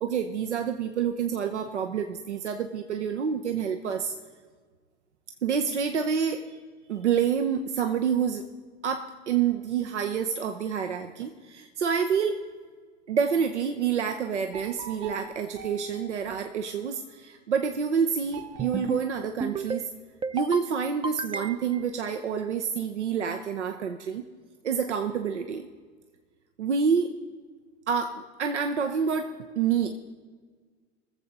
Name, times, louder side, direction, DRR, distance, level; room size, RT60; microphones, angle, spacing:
voice 1, 0.0-4.1 5.4-6.4 6.9-8.5 8.8-12.4 13.1-19.9 20.3-24.2 24.6-25.7 26.6-27.2 27.9-30.0, right 7 dB, 85° right, 6 dB, 0.7 m, -28 dB
sound 1, 14.5-17.2 18.3-20.1, right 7 dB, 65° right, 2.8 m, -47 dB
sound 2, 18.6-19.0 19.4-19.9 20.2-20.7 21.0-21.8, right 4 dB, 15° right, 0.4 m, -32 dB
21.0 x 7.5 x 4.0 m, 1.6 s
figure-of-eight pair, 70°, 34 cm